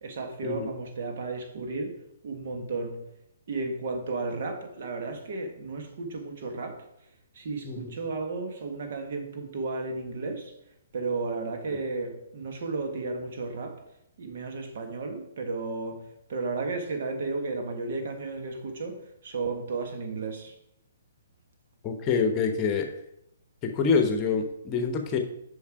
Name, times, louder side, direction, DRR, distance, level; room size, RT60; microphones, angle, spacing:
voice 1, 0.0-3.0 3.5-6.8 7.3-10.5 10.9-13.8 14.2-16.0 16.3-20.5, right 3 dB, 50° right, 1.6 m, -33 dB
voice 2, 21.8-22.9 23.6-25.2, left 5 dB, 25° left, 1.1 m, -26 dB
7.1 x 5.6 x 4.7 m
figure-of-eight pair, 125°, 0 cm